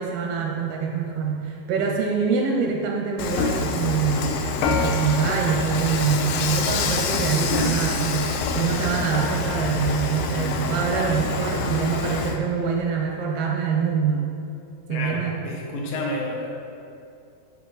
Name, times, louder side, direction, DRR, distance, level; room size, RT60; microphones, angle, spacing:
voice 1, 0.0-14.3 14.9-15.4, right 6 dB, 80° right, 1 dB, 2.4 m, -25 dB
Dishes pots and pans / Frying (food), 3.2-12.4, left 4 dB, 90° left, 1.9 m, -26 dB
voice 2, 14.9-16.5, left 1 dB, 70° left, -1 dB, 2.3 m, -30 dB
10.0 x 5.5 x 4.0 m, 2.6 s
omnidirectional pair, 4.8 m